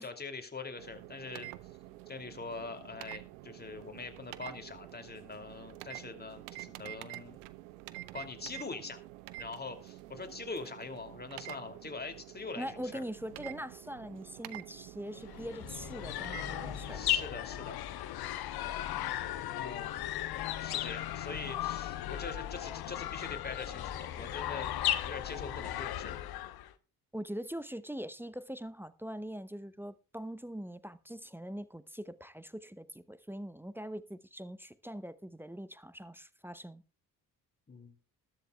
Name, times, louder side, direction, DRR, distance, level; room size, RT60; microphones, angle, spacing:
voice 1, 0.0-1.5 2.1-7.4 8.1-9.0 9.4-13.0 16.9-17.8 19.6-24.7 25.0-26.1 37.7-37.9, left 3 dB, 20° left, 2.7 m, -43 dB
sound 1, 0.8-17.2, right 17 dB, 70° right, 0.8 m, -48 dB
voice 2, 12.6-17.2 27.1-36.8, equal, 5° right, 0.8 m, -42 dB
sound 2, 15.2-26.7, left 12 dB, 50° left, 1.1 m, -36 dB
20.0 x 7.5 x 2.3 m
figure-of-eight pair, 45°, 47 cm